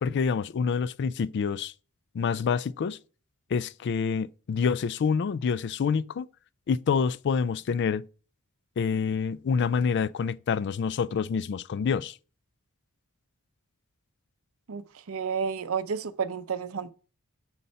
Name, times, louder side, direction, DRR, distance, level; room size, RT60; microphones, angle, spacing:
voice 1, 0.0-1.7 2.1-3.0 3.5-6.3 6.7-8.1 8.8-12.1, left 6 dB, 55° left, 0.3 m, -27 dB
voice 2, 15.1-16.9, right 6 dB, 70° right, 0.6 m, -31 dB
9.6 x 4.1 x 5.3 m
head